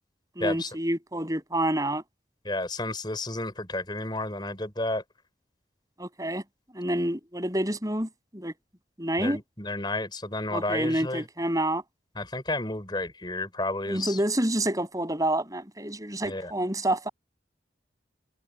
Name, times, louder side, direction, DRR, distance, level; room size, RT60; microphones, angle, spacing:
voice 1, 0.4-2.0 6.0-6.4 6.7-8.5 9.0-9.4 10.5-11.8 13.9-17.1, right 1 dB, 20° right, 7.8 m, -28 dB
voice 2, 2.4-5.0 9.2-11.3 12.2-14.2 16.2-16.5, left 2 dB, 25° left, 5.7 m, -31 dB
head